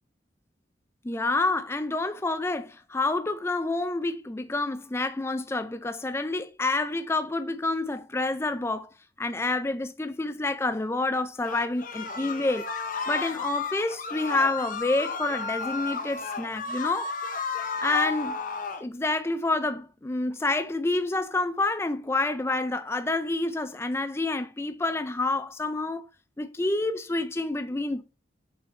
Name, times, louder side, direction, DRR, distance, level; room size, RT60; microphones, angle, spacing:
voice 1, 1.0-8.9 9.2-12.6 13.1-17.1 17.8-18.4 18.8-26.1 26.4-28.0, left 2 dB, 15° left, 0.4 m, -28 dB
sound 1, 11.4-18.8, left 5 dB, 45° left, 0.8 m, -33 dB
6.8 x 5.3 x 3.2 m
head